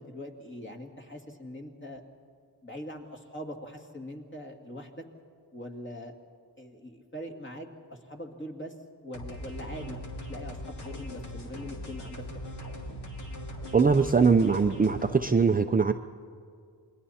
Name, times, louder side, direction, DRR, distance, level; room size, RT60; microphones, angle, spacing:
voice 1, 0.0-2.0 2.6-5.0 5.5-6.1 6.6-8.7 9.0-10.0 10.3-12.6, equal, 25° left, 2 dB, 2.3 m, -42 dB
sound 1, 9.1-15.1, equal, 70° left, 3.0 m, -40 dB
voice 2, 13.7-15.9, right 5 dB, 20° right, 6 dB, 0.5 m, -22 dB
28.5 x 21.5 x 4.3 m, 2.3 s
wide cardioid pair, 105°, 42 cm